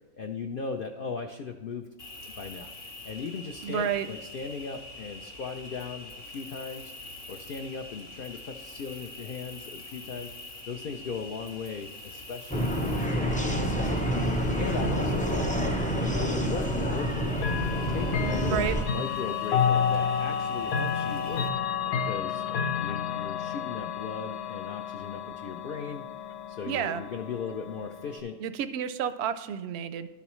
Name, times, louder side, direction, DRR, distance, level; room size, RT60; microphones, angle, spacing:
voice 1, 0.1-1.9 2.4-2.7 3.0-6.9 7.3-10.3 10.7-14.2 14.6-15.6 16.0-17.5 17.9-21.5 21.9-22.4 22.8-26.0 26.5-28.4, left 5 dB, 60° left, 5 dB, 0.5 m, -37 dB
Cricket, 2.0-21.5, left 2 dB, 45° left, 1.3 m, -45 dB
voice 2, 3.6-4.1 18.4-18.8 26.7-27.0 28.4-30.1, right 8 dB, 65° right, 12 dB, 0.7 m, -30 dB
sound 1, 12.5-18.8, equal, 10° left, 0.3 m, -28 dB
Chime / Clock, 17.4-28.2, left 7 dB, 85° left, 1.2 m, -31 dB
12.0 x 7.0 x 3.1 m, 1.2 s
omnidirectional pair, 1.5 m